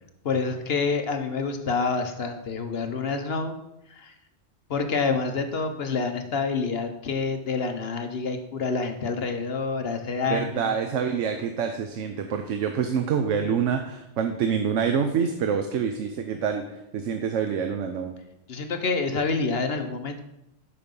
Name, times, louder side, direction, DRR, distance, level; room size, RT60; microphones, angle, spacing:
voice 1, 0.2-3.6 3.9-4.1 4.7-10.8 18.5-20.2, left 4 dB, 60° left, 6 dB, 1.0 m, -27 dB
voice 2, 10.3-18.1, right 7 dB, 80° right, 6 dB, 1.1 m, -26 dB
11.0 x 5.2 x 5.3 m, 0.87 s
omnidirectional pair, 1.2 m